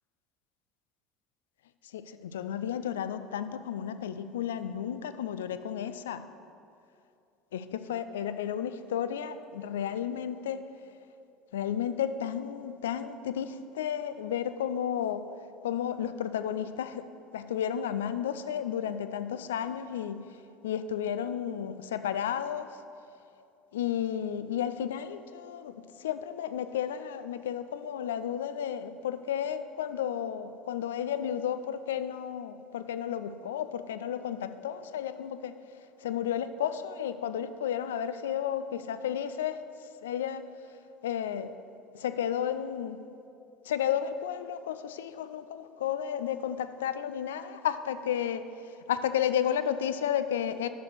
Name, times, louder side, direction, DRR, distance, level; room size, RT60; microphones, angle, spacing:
voice 1, 1.9-6.2 7.5-10.6 11.5-15.2 15.6-17.0 17.3-20.2 20.6-22.7 23.7-25.7 26.0-35.5 36.0-39.6 40.0-40.4 41.0-41.5 41.9-43.0 43.7-48.5 48.9-50.7, left 9 dB, 75° left, 12 dB, 0.3 m, -32 dB
6.6 x 5.8 x 6.6 m, 2.6 s
figure-of-eight pair, 70°, 0 cm